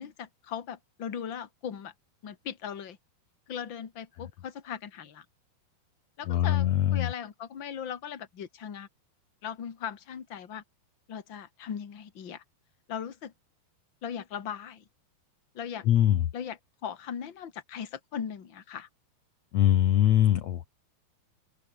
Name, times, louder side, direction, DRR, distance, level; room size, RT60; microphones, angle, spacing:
voice 1, 0.0-1.9 2.2-3.0 3.5-5.2 6.2-8.9 9.4-10.6 11.1-12.4 12.9-13.3 14.0-14.8 15.5-15.9 16.3-18.9, left 8 dB, 40° left, 1.8 m, -38 dB
voice 2, 6.3-7.1 15.8-16.2 19.5-20.7, left 11 dB, 80° left, 1.5 m, -22 dB
open air
omnidirectional pair, 5.1 m